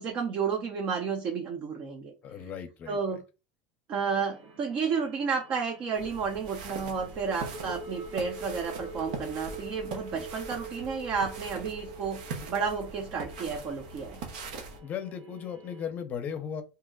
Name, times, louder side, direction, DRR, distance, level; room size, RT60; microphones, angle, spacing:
voice 1, 0.0-2.1 2.9-3.2 3.9-12.2 12.5-14.2, right 5 dB, 45° right, 3 dB, 0.6 m, -31 dB
voice 2, 2.2-3.0 7.6-7.7 10.1-10.3 14.8-16.6, left 8 dB, 40° left, 9 dB, 0.6 m, -37 dB
sound 1, 3.9-15.8, right 3 dB, 60° right, 1.3 m, -45 dB
sound 2, 5.9-14.8, right 4 dB, 85° right, 0.7 m, -42 dB
2.8 x 2.1 x 3.7 m, 0.30 s
supercardioid pair, 115°, 4 cm